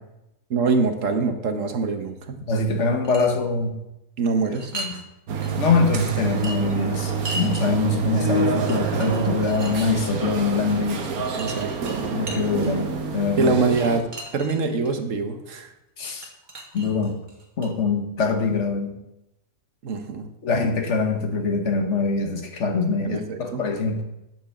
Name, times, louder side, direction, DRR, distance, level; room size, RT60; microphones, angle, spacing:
voice 1, 0.5-2.4 4.2-4.7 11.3-11.7 13.4-14.1 14.3-15.7 19.8-20.3 23.0-23.6, right 4 dB, 60° right, 7 dB, 1.3 m, -24 dB
voice 2, 2.5-3.8 4.7-5.0 5.6-11.3 12.1-13.5 16.0-16.3 16.7-17.2 17.6-18.9 20.4-24.0, left 4 dB, 55° left, 5 dB, 1.5 m, -24 dB
sound 1, 2.8-3.3 4.4-5.0 5.4-5.5 6.3-7.6 8.4-8.5 8.7-9.8 11.2-12.9 13.8-14.9 16.0-17.7, right 1 dB, 35° right, 1.6 m, -36 dB
sound 2, 5.3-14.0, right 5 dB, 75° right, 1.5 m, -27 dB
8.9 x 6.2 x 7.1 m, 0.91 s
omnidirectional pair, 1.5 m